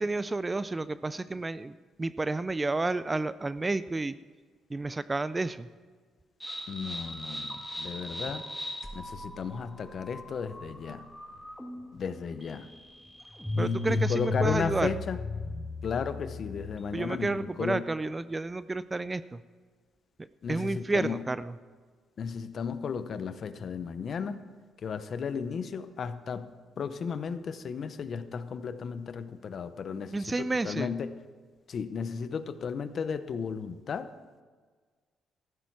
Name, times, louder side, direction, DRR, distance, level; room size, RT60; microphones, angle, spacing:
voice 1, 0.0-4.2 4.7-5.7 13.6-14.9 16.9-19.4 20.5-21.5 30.1-30.9, right 2 dB, 15° right, 15 dB, 0.3 m, -31 dB
sound 1, 6.4-17.0, left 2 dB, ahead, 1.5 m, -36 dB
voice 2, 6.7-8.4 8.9-11.1 11.9-12.7 13.6-15.2 15.8-17.8 20.4-21.2 22.2-24.4 24.8-26.5 26.8-31.1 31.7-34.1, left 6 dB, 45° left, 12 dB, 0.7 m, -34 dB
14.5 x 11.5 x 4.6 m, 1.5 s
cardioid pair, 135°, 0 cm